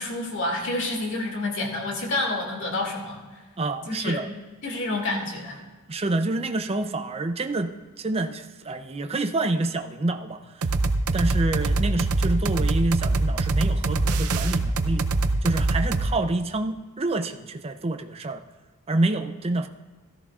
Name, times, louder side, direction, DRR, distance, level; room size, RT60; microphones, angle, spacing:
voice 1, 0.0-3.4 3.9-4.2 4.6-5.6, left 2 dB, 60° left, 0 dB, 2.3 m, -29 dB
voice 2, 3.6-4.3 5.9-7.7 8.0-10.7 11.1-15.1 15.4-18.4 18.9-19.7, right 2 dB, 25° right, 7 dB, 0.5 m, -27 dB
sound 1, 10.6-16.1, right 2 dB, 75° right, 0.6 m, -23 dB
17.0 x 13.5 x 2.4 m, 1.3 s
head